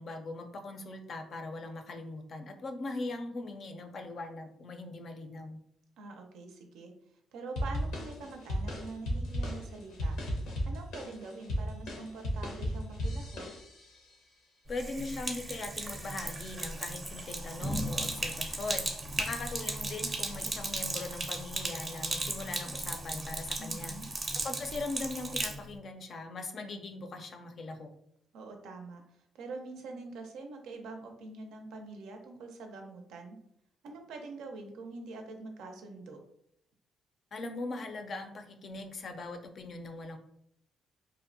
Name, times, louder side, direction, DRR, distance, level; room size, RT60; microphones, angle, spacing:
voice 1, 0.0-5.6 14.7-24.0 24.4-27.9 37.3-40.2, left 2 dB, 50° left, 6 dB, 0.4 m, -40 dB
voice 2, 6.0-6.9 7.3-10.2 10.7-13.5 23.6-24.1 28.3-29.0 29.3-33.4 33.8-36.2, right 3 dB, 85° right, 4 dB, 0.4 m, -45 dB
sound 1, 7.6-14.0, equal, 90° left, 0.7 m, -35 dB
Sink (filling or washing), 14.7-25.6, right 2 dB, 35° right, 0.5 m, -36 dB
2.6 x 2.1 x 2.5 m, 0.73 s
cardioid pair, 90°, 0 cm